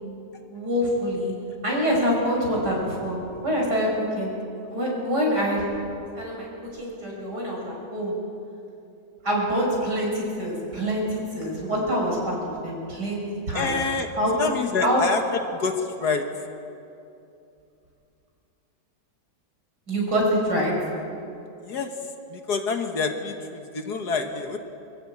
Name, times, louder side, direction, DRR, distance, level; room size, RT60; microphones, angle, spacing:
voice 1, 0.5-1.3 1.6-3.2 3.4-3.9 4.2-4.3 4.7-5.6 6.2-8.1 9.2-13.2 13.5-13.7 14.2-14.3 14.8-15.0 19.9-20.7, equal, 65° right, -2 dB, 6.2 m, -25 dB
voice 2, 13.5-16.3 21.6-21.9 22.3-24.6, left 4 dB, 60° left, 5 dB, 2.0 m, -27 dB
24.5 x 15.0 x 8.6 m, 2.6 s
omnidirectional pair, 1.9 m